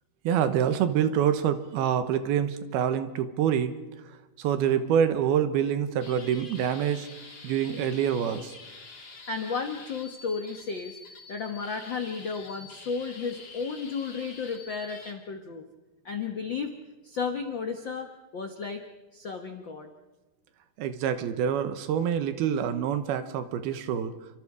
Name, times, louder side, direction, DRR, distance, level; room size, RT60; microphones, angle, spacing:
voice 1, 0.2-3.7 4.4-7.1 7.4-8.5 20.8-24.1, right 9 dB, 90° right, 10 dB, 3.1 m, -26 dB
sound 1, 6.0-15.1, left 3 dB, 30° left, 2.6 m, -47 dB
voice 2, 9.3-11.0 11.3-15.6 16.0-16.7 17.0-18.8 19.1-19.9, left 5 dB, 80° left, 5 dB, 1.0 m, -33 dB
28.5 x 25.0 x 4.9 m, 1.1 s
omnidirectional pair, 4.3 m